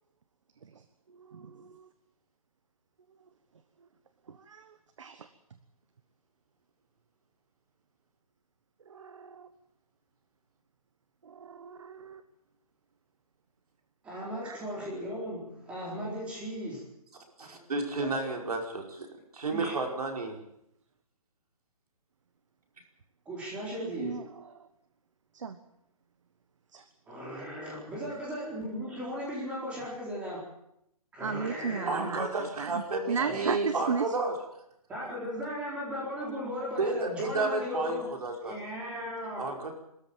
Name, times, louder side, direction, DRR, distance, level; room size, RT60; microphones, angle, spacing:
voice 1, 0.6-1.9 4.3-5.3 8.8-9.5 11.2-12.2 14.4-14.6 19.9-20.0 20.2-20.3 23.8-24.7 25.3-25.6 26.7-26.8 31.2-34.2, right 5 dB, 55° right, 11 dB, 1.3 m, -36 dB
voice 2, 14.0-16.8 17.4-17.6 18.0-18.3 19.5-19.7 23.3-24.2 27.1-30.4 31.1-32.0 33.2-33.4 34.9-38.1 38.4-39.5, equal, 5° right, -5 dB, 4.1 m, -37 dB
voice 3, 17.4-19.1 19.3-20.4 31.8-34.4 36.8-38.6 39.4-39.7, right 3 dB, 75° right, 3 dB, 5.1 m, -32 dB
23.5 x 13.5 x 8.9 m, 0.80 s
hypercardioid pair, 175°, 19 cm